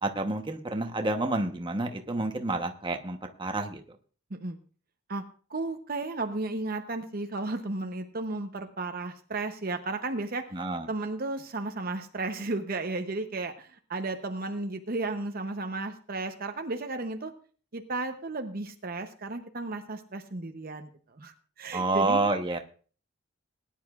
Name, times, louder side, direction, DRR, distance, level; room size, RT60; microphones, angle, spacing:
voice 1, 0.0-3.8 10.5-10.9 21.7-22.6, right 2 dB, 25° right, 5 dB, 1.0 m, -29 dB
voice 2, 5.5-10.5 10.9-17.3 17.7-20.9 21.2-22.2, right 2 dB, 45° right, 6 dB, 0.8 m, -34 dB
20.0 x 10.0 x 2.4 m, 0.40 s
head